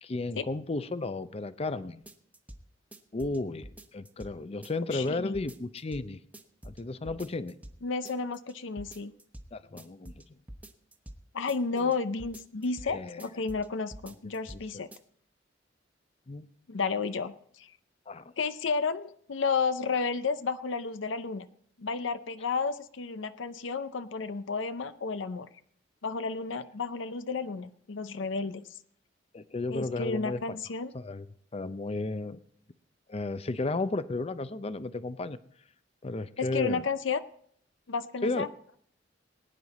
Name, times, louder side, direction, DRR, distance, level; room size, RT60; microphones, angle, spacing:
voice 1, 0.0-2.0 3.1-6.2 6.6-7.5 9.5-10.2 11.7-11.9 12.9-13.2 14.5-14.8 16.3-16.5 18.1-18.3 29.3-30.4 30.9-31.3 31.5-32.4 33.1-35.4 36.0-36.8 38.2-38.5, left 2 dB, 35° left, 13 dB, 0.5 m, -33 dB
sound 1, 2.1-2.6 2.9-4.3 4.6-5.1 5.3-6.0 6.3-6.8 7.0-7.8 8.0-8.5 8.8-9.5 9.8-11.2 11.5-11.9 12.2-12.9 13.2-13.7 13.9-14.6 14.9-15.0, right 1 dB, 10° right, 1.0 m, -46 dB
voice 2, 4.9-5.4 7.8-9.1 11.3-14.9 16.7-17.7 18.4-21.5 21.8-25.5 26.0-28.6 29.7-30.9 36.4-37.2 37.9-38.5, left 4 dB, 80° left, 12 dB, 0.6 m, -32 dB
20.0 x 9.6 x 4.1 m, 0.65 s
head